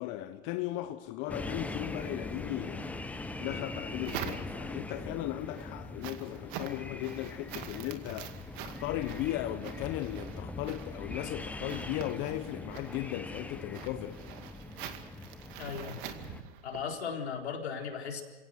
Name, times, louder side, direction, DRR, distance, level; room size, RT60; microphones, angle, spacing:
voice 1, 0.0-2.9 3.4-8.3 8.6-14.2, left 15 dB, 35° left, 1.1 m, -37 dB
sound 1, 1.3-16.4, left 2 dB, 5° left, 0.9 m, -41 dB
sound 2, 3.5-4.9 5.3-16.9, right 9 dB, 50° right, 2.2 m, -45 dB
voice 2, 15.6-16.0 16.6-18.2, left 6 dB, 75° left, 4.2 m, -37 dB
29.0 x 17.5 x 6.5 m
hypercardioid pair, 125°, 33 cm